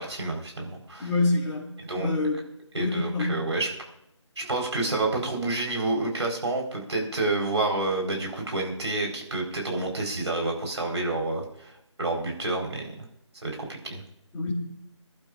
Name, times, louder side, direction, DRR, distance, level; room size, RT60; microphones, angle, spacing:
voice 1, 0.0-1.1 1.9-2.1 2.7-3.7 4.4-12.9 13.4-14.0, right 2 dB, 65° right, 1 dB, 4.4 m, -29 dB
voice 2, 1.0-1.6 1.9-2.4 2.7-3.3 14.3-14.5, left 2 dB, 5° left, -9 dB, 2.8 m, -26 dB
28.0 x 11.5 x 2.5 m, 0.78 s
figure-of-eight pair, 170°, 16 cm